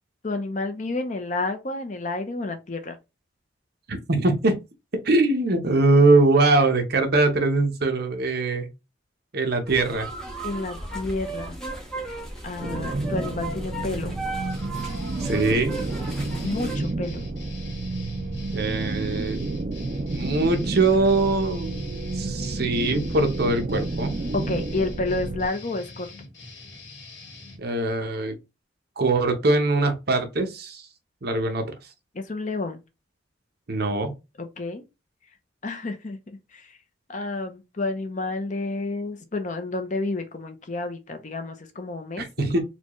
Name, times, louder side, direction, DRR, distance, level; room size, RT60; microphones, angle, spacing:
voice 1, 0.2-3.0 10.4-11.6 12.0-12.2 12.4-14.2 16.4-17.2 24.3-26.1 32.1-32.8 34.4-34.8 35.6-36.2 36.5-36.8 37.1-42.3, left 2 dB, 40° left, 0.6 m, -30 dB
voice 2, 3.9-4.6 5.0-8.7 9.3-10.1 15.2-15.7 18.5-19.6 20.1-24.1 27.6-28.3 29.0-30.9 31.2-31.6 33.7-34.1 42.2-42.6, right 2 dB, 55° right, 0.8 m, -22 dB
sound 1, 9.7-16.7, right 2 dB, 5° left, 1.0 m, -35 dB
sound 2, 12.6-25.5, right 2 dB, 40° right, 0.4 m, -30 dB
sound 3, 14.5-27.6, left 2 dB, 80° left, 1.9 m, -44 dB
4.3 x 2.3 x 3.0 m
head